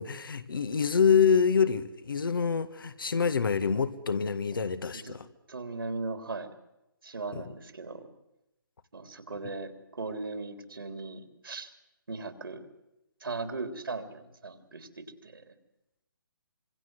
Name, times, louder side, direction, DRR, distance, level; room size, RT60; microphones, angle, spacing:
voice 1, 0.0-5.3 7.3-7.4, left 6 dB, 70° left, 10 dB, 1.8 m, -26 dB
voice 2, 5.5-6.5 7.0-8.1 8.9-11.7 12.1-12.6 13.2-15.5, right 3 dB, 75° right, 7 dB, 3.6 m, -38 dB
26.0 x 23.5 x 7.9 m, 0.91 s
figure-of-eight pair, 145°, 12 cm